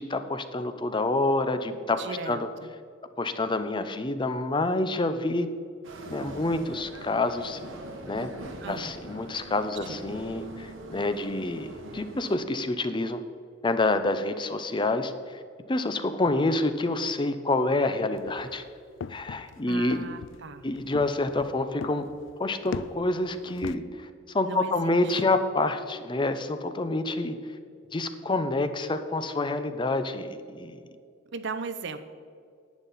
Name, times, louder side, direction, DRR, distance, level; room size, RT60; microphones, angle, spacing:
voice 1, 0.0-2.5 3.2-5.5 6.1-7.6 8.0-8.3 8.7-13.2 13.6-15.4 15.7-18.6 19.1-20.1 20.6-22.1 22.4-27.3 27.9-30.8, left 2 dB, 25° left, 10 dB, 0.6 m, -28 dB
voice 2, 2.0-2.7 8.6-8.9 9.8-10.0 19.7-20.7 24.4-25.2 31.3-32.0, right 4 dB, 65° right, 10 dB, 0.7 m, -37 dB
sound 1, 5.8-12.4, right 1 dB, 85° right, 1.3 m, -42 dB
sound 2, 18.1-23.8, left 5 dB, 70° left, 0.3 m, -40 dB
10.5 x 9.2 x 4.1 m, 2.3 s
head